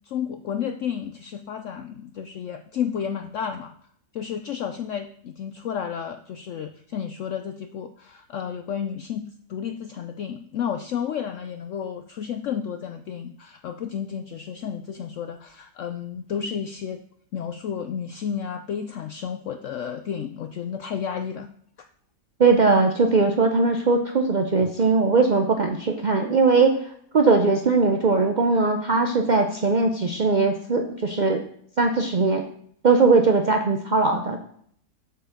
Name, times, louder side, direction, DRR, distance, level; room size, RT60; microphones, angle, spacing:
voice 1, 0.1-3.7 4.1-17.0 17.3-21.5, left 8 dB, 75° left, 8 dB, 0.7 m, -32 dB
voice 2, 22.4-26.8 27.1-31.4 31.8-32.5 32.8-34.4, right 4 dB, 75° right, 3 dB, 0.4 m, -20 dB
8.1 x 4.8 x 6.4 m, 0.64 s
omnidirectional pair, 1.8 m